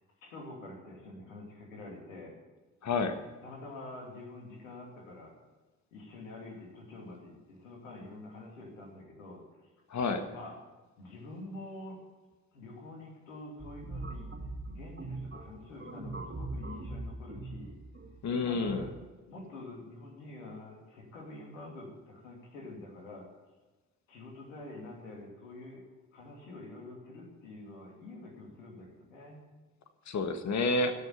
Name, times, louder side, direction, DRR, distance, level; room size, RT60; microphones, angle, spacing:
voice 1, 0.0-2.4 3.4-5.3 5.9-9.4 10.3-10.6 11.0-12.0 12.5-14.3 14.7-17.8 18.4-18.9 19.3-23.3 24.1-29.4, left 2 dB, 90° left, 0 dB, 2.7 m, -47 dB
voice 2, 2.8-3.1 9.9-10.3 18.2-18.9 30.1-30.9, left 3 dB, 45° left, 8 dB, 1.6 m, -29 dB
sound 1, 13.6-19.0, right 2 dB, 30° right, 2.5 m, -41 dB
16.0 x 6.6 x 9.1 m, 1.2 s
hypercardioid pair, 45°, 38 cm